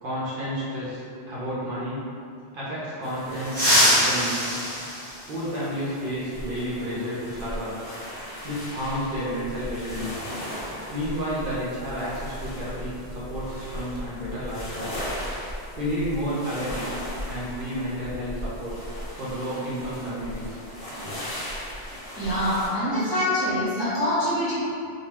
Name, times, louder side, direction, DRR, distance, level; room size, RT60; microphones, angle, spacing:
voice 1, 0.0-1.0 1.3-2.1 2.5-4.6 5.3-7.8 8.4-10.2 10.9-15.0 15.8-17.0 17.3-18.8 19.2-20.6, equal, 60° right, -9 dB, 0.8 m, -31 dB
sound 1, 3.0-22.7, equal, 60° left, 0.9 m, -37 dB
sound 2, 3.5-5.9 7.5-7.6 8.8-8.9 10.6-10.7 11.1-11.3 11.8-14.0 14.2-14.5 14.9-15.3, equal, 25° right, 0.9 m, -25 dB
voice 2, 22.2-24.5, equal, 25° left, -14 dB, 0.9 m, -25 dB
2.2 x 2.2 x 3.2 m, 2.5 s
omnidirectional pair, 1.1 m